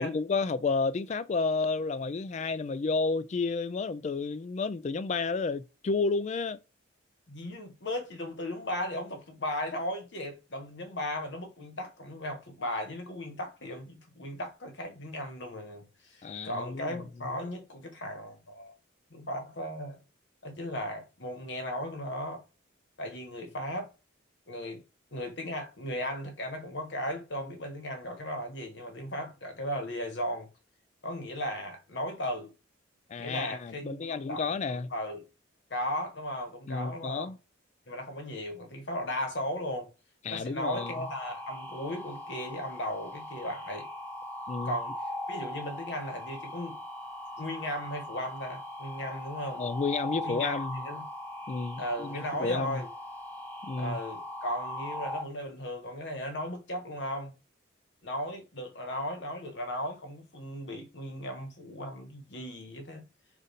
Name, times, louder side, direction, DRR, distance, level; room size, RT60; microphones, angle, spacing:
voice 1, 0.0-6.6 16.2-17.0 33.1-34.9 36.7-37.4 40.2-40.9 44.5-44.8 49.6-50.8 51.5-52.8 53.6-54.0, left 4 dB, 35° left, 0.3 m, -31 dB
voice 2, 7.3-18.7 19.1-20.0 20.4-22.4 23.0-23.9 24.5-24.8 25.1-30.5 31.0-32.5 33.2-34.4 34.7-35.2 35.7-37.3 37.9-39.9 40.3-43.9 44.6-44.9 45.3-46.8 47.4-49.6 50.2-51.1 51.8-52.9 53.8-57.3 58.0-63.0, left 1 dB, 60° left, 1.2 m, -36 dB
sound 1, 40.7-55.2, left 1 dB, 10° left, 0.8 m, -40 dB
5.1 x 2.5 x 4.0 m
head